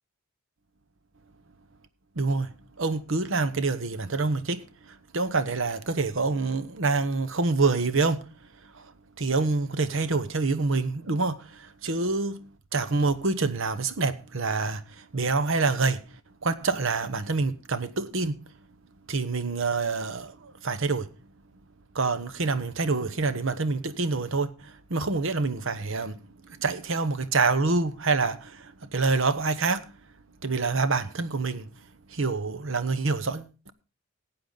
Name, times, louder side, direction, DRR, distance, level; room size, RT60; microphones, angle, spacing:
voice 1, 2.2-2.5 2.8-4.6 5.1-8.2 9.2-11.4 11.8-12.4 12.7-14.8 15.1-16.0 16.4-18.4 19.1-20.3 20.6-21.1 21.9-24.5 24.9-26.2 26.6-28.4 28.9-29.8 30.4-31.6 32.1-33.7, right 3 dB, 65° right, 1.0 m, -26 dB
15.5 x 8.9 x 3.9 m
head